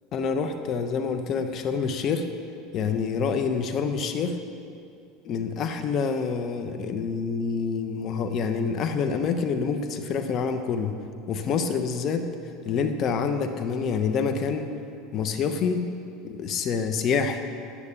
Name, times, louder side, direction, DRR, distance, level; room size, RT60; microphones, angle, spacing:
voice 1, 0.1-2.2 2.7-4.4 5.2-10.9 11.3-12.3 12.6-14.7 15.1-15.9 16.2-17.4, left 5 dB, 45° left, 7 dB, 0.9 m, -27 dB
9.7 x 9.0 x 8.4 m, 2.5 s
supercardioid pair, 115°, 0 cm